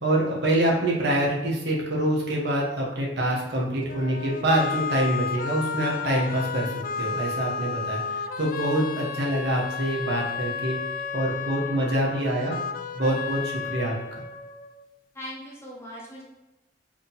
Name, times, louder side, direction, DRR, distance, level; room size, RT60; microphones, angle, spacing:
voice 1, 0.0-10.8 11.1-12.5 12.9-13.9, right 1 dB, 65° right, -3 dB, 1.3 m, -25 dB
sound 1, 3.9-14.9, left 6 dB, 50° left, 0.4 m, -33 dB
voice 2, 15.1-16.2, equal, 15° left, -4 dB, 1.0 m, -40 dB
4.9 x 3.8 x 5.3 m, 1.0 s
head